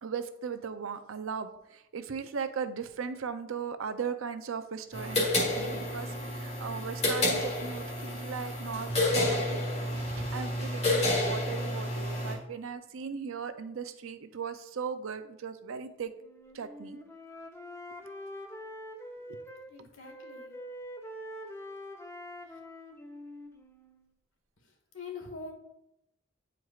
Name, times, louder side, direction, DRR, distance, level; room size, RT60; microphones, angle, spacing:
voice 1, 0.0-9.6 10.2-16.1 16.5-17.0 19.3-19.4, right 6 dB, 80° right, 10 dB, 0.5 m, -38 dB
sound 1, 4.9-12.3, left 1 dB, 35° left, 1.6 m, -30 dB
Wind instrument woodwind instrument, 16.2-19.7 20.0-24.1, equal, 15° left, 0.6 m, -45 dB
voice 2, 19.7-20.5 24.9-25.5, left 4 dB, 75° left, 2 dB, 1.5 m, -43 dB
9.3 x 4.6 x 2.4 m, 0.83 s
head